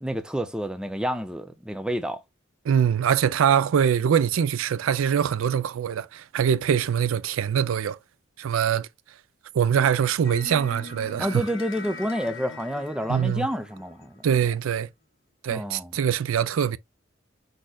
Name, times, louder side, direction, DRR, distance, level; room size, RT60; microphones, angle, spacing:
voice 1, 0.0-2.2 11.2-14.2 15.5-16.0, equal, 5° right, 0.4 m, -29 dB
voice 2, 2.7-8.0 8.4-8.9 9.5-11.4 13.1-13.5 14.2-14.9 15.4-16.8, right 8 dB, 85° right, 0.4 m, -23 dB
sound 1, 10.2-14.6, left 3 dB, 70° left, 0.8 m, -41 dB
4.9 x 4.2 x 2.2 m
head